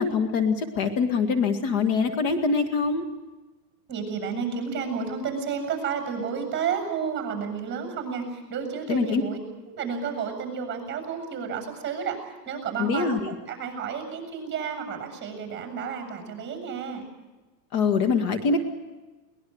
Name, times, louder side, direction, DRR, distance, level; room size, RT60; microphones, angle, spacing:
voice 1, 0.0-3.0 8.9-9.2 12.8-13.2 17.7-18.6, left 5 dB, 45° left, 7 dB, 1.9 m, -24 dB
voice 2, 3.9-9.4 9.6-17.0, right 6 dB, 20° right, 4 dB, 7.1 m, -31 dB
22.5 x 20.0 x 7.9 m, 1.2 s
supercardioid pair, 145°, 48 cm